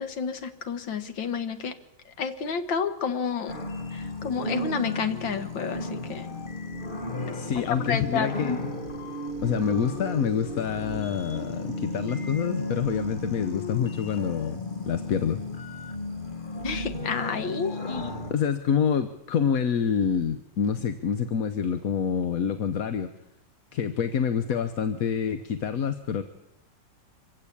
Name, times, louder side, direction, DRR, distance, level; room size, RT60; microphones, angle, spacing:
voice 1, 0.0-1.7 2.2-3.5 3.9-6.4 7.5-8.6 16.6-18.2, left 6 dB, 90° left, 10 dB, 2.1 m, -30 dB
sound 1, 3.5-18.3, left 2 dB, 30° left, 1.7 m, -34 dB
voice 2, 7.3-8.5 9.4-15.4 18.3-23.1 23.7-26.2, left 7 dB, 55° left, 10 dB, 1.3 m, -27 dB
25.0 x 15.5 x 8.6 m, 0.87 s
omnidirectional pair, 2.0 m